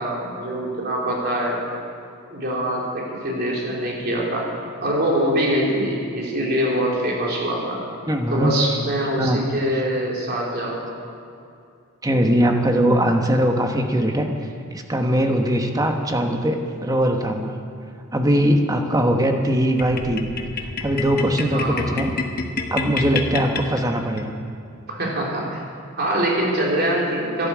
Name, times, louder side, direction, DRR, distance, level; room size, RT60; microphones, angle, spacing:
voice 1, 0.0-1.6 2.3-4.5 4.8-7.8 8.3-10.9 21.5-21.8 24.9-25.6 26.0-27.5, right 1 dB, 50° right, -3 dB, 3.6 m, -24 dB
voice 2, 8.1-8.5 9.2-9.4 12.0-14.3 14.7-17.5 18.1-20.3 20.8-22.1 22.7-24.3, equal, 15° right, 4 dB, 1.1 m, -20 dB
sound 1, 19.8-24.3, left 3 dB, 45° left, 1.0 m, -29 dB
12.5 x 11.0 x 8.3 m, 2.4 s
head